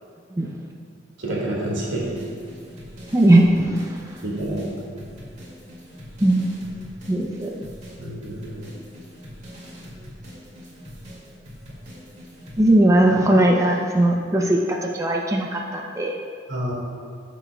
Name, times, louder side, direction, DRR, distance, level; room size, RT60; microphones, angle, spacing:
voice 1, 1.2-2.1 4.2-4.7 8.0-8.6 16.5-16.7, right 1 dB, 85° right, -3 dB, 2.0 m, -28 dB
sound 1, 2.0-12.7, equal, 40° right, 2.1 m, -42 dB
voice 2, 3.1-4.0 6.2-6.5 7.1-7.6 12.6-16.1, right 1 dB, 15° right, 0 dB, 0.5 m, -19 dB
14.0 x 6.2 x 2.2 m, 2.3 s
head